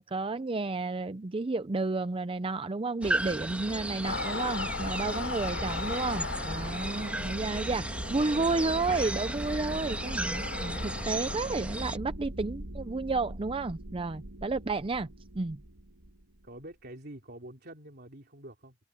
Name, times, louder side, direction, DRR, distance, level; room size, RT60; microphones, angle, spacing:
voice 1, 0.0-15.1 15.3-15.6, right 3 dB, 25° right, 0.5 m, -31 dB
sound 1, 3.0-12.0, right 1 dB, 5° right, 1.5 m, -35 dB
sound 2, 4.0-11.4, left 4 dB, 75° left, 3.7 m, -38 dB
sound 3, 4.4-16.6, right 1 dB, 85° right, 2.3 m, -42 dB
voice 2, 16.4-18.8, right 1 dB, 55° right, 3.6 m, -48 dB
head